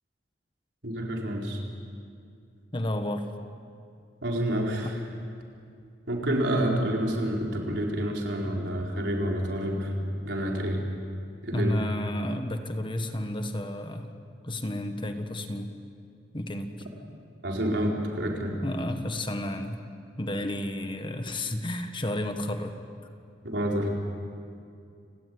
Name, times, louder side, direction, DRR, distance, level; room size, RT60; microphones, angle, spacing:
voice 1, 0.8-1.6 4.2-5.0 6.1-9.9 10.2-10.8 11.4-11.7 17.4-18.6 23.4-23.9, right 1 dB, 75° right, -1 dB, 4.7 m, -28 dB
voice 2, 2.7-3.3 11.5-14.1 14.4-15.7 16.3-16.8 18.6-19.8 20.2-22.7, left 1 dB, 30° left, 7 dB, 1.6 m, -31 dB
29.5 x 18.5 x 9.6 m, 2.4 s
head